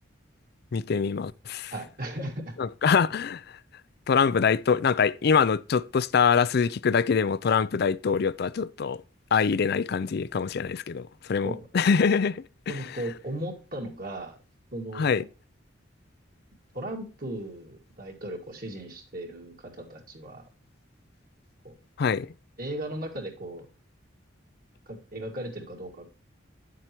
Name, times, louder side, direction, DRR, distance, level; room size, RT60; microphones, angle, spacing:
voice 1, 0.7-1.7 2.6-3.4 4.1-9.0 9.3-12.9 15.0-15.2 22.0-22.3, left 6 dB, 55° left, 0.4 m, -24 dB
voice 2, 1.7-2.5 11.4-11.7 12.7-14.4 14.7-15.2 16.7-20.4 21.6-21.8 22.6-23.7 24.9-26.0, right 1 dB, 50° right, 2.4 m, -37 dB
9.5 x 7.5 x 3.0 m
head